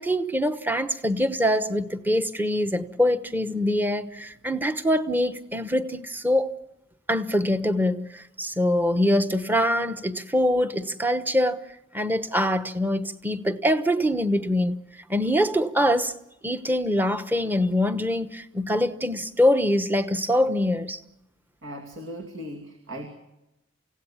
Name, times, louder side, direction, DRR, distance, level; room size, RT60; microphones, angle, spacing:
voice 1, 0.0-6.5 7.1-11.6 11.9-14.8 15.1-16.1 16.4-21.0, equal, 10° right, 1.0 m, -24 dB
voice 2, 21.6-23.1, equal, 70° right, 2.6 m, -38 dB
29.0 x 17.0 x 7.1 m
head